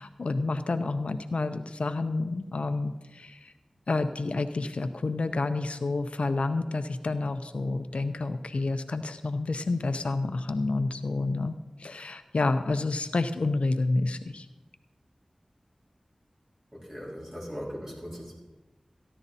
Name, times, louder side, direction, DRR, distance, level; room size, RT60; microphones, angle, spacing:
voice 1, 0.0-3.5 3.9-11.5 11.8-14.5, left 3 dB, 90° left, 9 dB, 0.6 m, -29 dB
voice 2, 16.7-18.3, equal, 25° right, -5 dB, 4.2 m, -39 dB
14.5 x 11.0 x 4.1 m, 1.1 s
wide cardioid pair, 65°, 2 cm